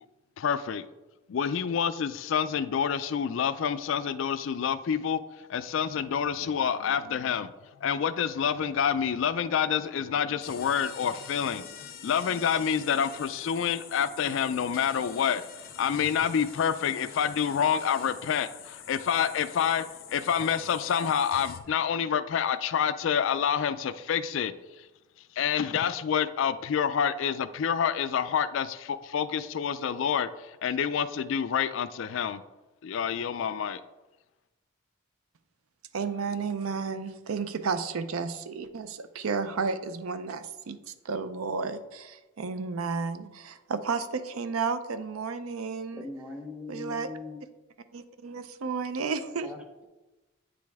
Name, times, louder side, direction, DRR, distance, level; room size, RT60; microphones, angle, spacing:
voice 1, 0.4-0.8 1.3-5.2 5.5-7.5 7.8-24.5 25.4-32.4 32.8-33.8, left 7 dB, 65° left, 13 dB, 0.3 m, -28 dB
sound 1, 10.4-21.6, left 8 dB, 45° left, 0.7 m, -46 dB
voice 2, 35.9-46.1 46.7-47.1 47.9-49.5, right 5 dB, 90° right, 11 dB, 0.5 m, -32 dB
voice 3, 45.9-47.4 49.4-49.8, left 3 dB, 5° right, 2 dB, 0.8 m, -40 dB
9.0 x 5.1 x 3.5 m, 1.1 s
head